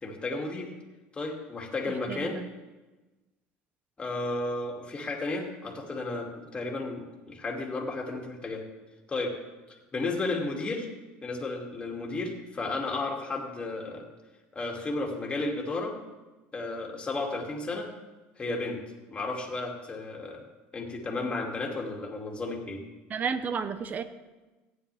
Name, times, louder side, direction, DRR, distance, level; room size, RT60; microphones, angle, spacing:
voice 1, 0.0-0.7 1.1-2.4 4.0-8.6 9.1-9.3 9.9-10.9 11.2-14.1 14.5-15.9 16.5-17.9 18.4-18.8 19.1-20.4 20.7-22.8, left 2 dB, 20° left, 0 dB, 2.5 m, -33 dB
voice 2, 2.1-2.5 23.1-24.0, right 6 dB, 35° right, 12 dB, 0.9 m, -32 dB
15.5 x 9.7 x 3.5 m, 1.2 s
supercardioid pair, 105°, 5 cm